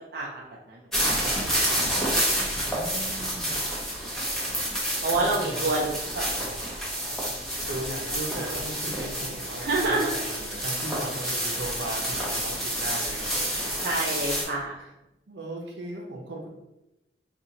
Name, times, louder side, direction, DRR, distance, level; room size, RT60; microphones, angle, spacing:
voice 1, 0.1-1.8 2.6-2.8 3.4-3.8 5.0-7.7 9.6-10.1 13.8-14.8, right 2 dB, 60° right, -4 dB, 0.5 m, -30 dB
sound 1, 0.9-14.4, equal, 5° left, 0.9 m, -29 dB
voice 2, 2.6-3.5 5.2-5.7 7.7-13.7 14.5-14.9 15.3-16.5, right 1 dB, 80° right, 0 dB, 0.8 m, -37 dB
4.2 x 2.5 x 2.8 m, 0.95 s
head